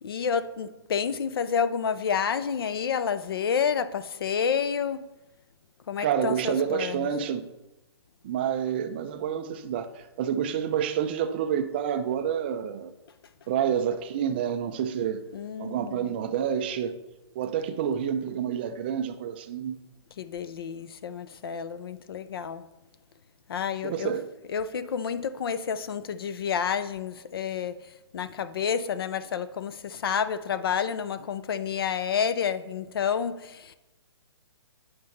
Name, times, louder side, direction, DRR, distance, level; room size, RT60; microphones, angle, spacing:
voice 1, 0.0-5.0 5.9-7.1 15.3-16.1 20.2-22.6 23.5-24.1 24.5-27.8 28.1-33.7, left 7 dB, 55° left, 0.5 m, -29 dB
voice 2, 6.0-7.5 8.2-12.9 13.5-15.2 15.6-17.0 17.4-19.8 23.8-24.3, right 8 dB, 20° right, 0.3 m, -28 dB
8.7 x 5.8 x 3.2 m
hypercardioid pair, 155°, 15 cm